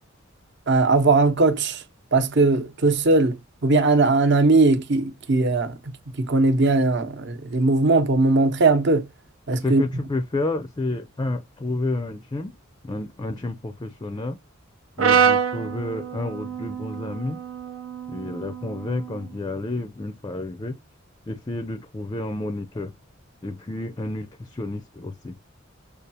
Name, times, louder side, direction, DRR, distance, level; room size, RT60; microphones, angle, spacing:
voice 1, 0.7-1.8 2.1-3.4 3.6-5.8 6.2-9.0 9.5-9.8, right 3 dB, 60° right, 0.9 m, -19 dB
voice 2, 9.6-12.6 12.8-14.4 15.0-17.4 18.1-20.8 21.3-22.9 23.4-25.4, left 2 dB, 20° left, 0.4 m, -30 dB
Brass instrument, 15.0-19.2, right 7 dB, 85° right, 0.7 m, -25 dB
6.5 x 2.3 x 2.7 m
head